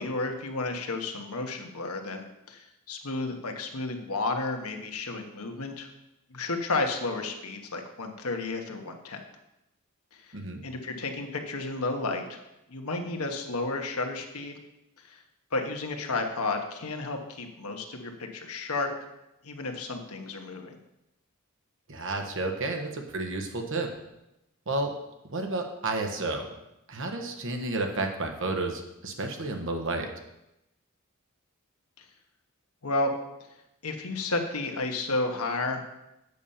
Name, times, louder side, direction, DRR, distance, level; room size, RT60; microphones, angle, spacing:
voice 1, 0.0-5.9 6.3-9.2 10.1-10.4 10.6-12.4 12.7-14.6 15.0-15.2 15.5-18.9 19.4-20.7 32.0-32.1 32.8-33.1 33.8-35.8, left 3 dB, 90° left, 4 dB, 1.3 m, -32 dB
voice 2, 21.9-23.9 24.7-24.9 25.3-26.5 26.9-30.1, right 2 dB, 60° right, 4 dB, 1.3 m, -31 dB
8.2 x 5.6 x 7.1 m, 0.91 s
head